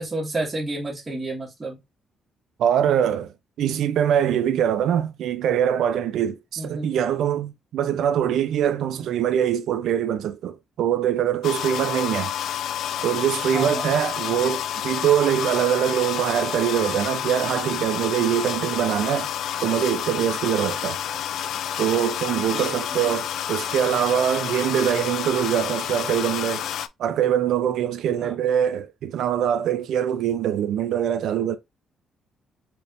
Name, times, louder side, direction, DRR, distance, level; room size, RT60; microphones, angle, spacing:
voice 1, 0.0-1.8 6.6-6.9 13.5-13.9 22.5-23.1 28.2-28.3, right 2 dB, 25° right, 1.6 m, -31 dB
voice 2, 2.6-3.3 3.6-12.3 13.0-19.3 19.6-21.0 21.8-26.7 27.0-31.6, right 9 dB, 75° right, 0.4 m, -23 dB
sound 1, 11.4-26.9, left 10 dB, 75° left, 0.3 m, -29 dB
4.2 x 3.4 x 2.5 m
cardioid pair, 90°, 0 cm